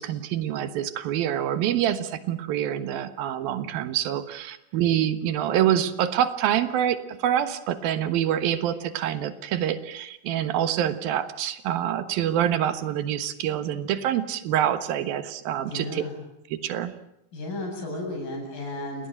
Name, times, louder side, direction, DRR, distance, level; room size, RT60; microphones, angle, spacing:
voice 1, 0.0-16.0 16.5-16.9, right 10 dB, 70° right, 11 dB, 3.0 m, -26 dB
voice 2, 15.6-16.2 17.3-19.1, left 2 dB, 60° left, 1 dB, 9.6 m, -33 dB
30.0 x 18.5 x 9.1 m, 0.81 s
omnidirectional pair, 4.6 m